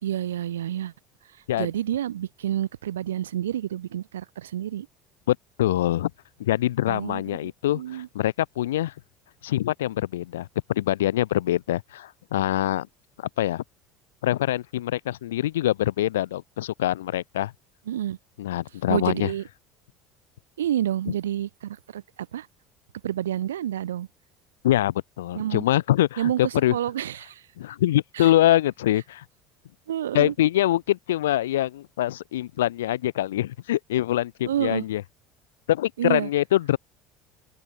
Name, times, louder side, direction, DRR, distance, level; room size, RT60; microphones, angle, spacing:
voice 1, 0.0-0.9 1.5-4.9 6.9-8.1 17.9-18.2 18.9-19.4 20.6-22.0 22.3-22.5 23.0-24.1 25.3-25.7 26.2-27.4 28.1-28.3 29.9-30.3 34.5-34.8 36.0-36.3, right 11 dB, 80° right, 2.2 m, -29 dB
voice 2, 5.3-6.1 6.4-8.9 9.4-12.9 13.2-13.6 14.2-17.5 18.4-19.3 24.6-26.7 27.6-29.2 30.1-35.0 35.7-36.8, left 13 dB, 75° left, 1.0 m, -24 dB
open air
figure-of-eight pair, 65°, 0 cm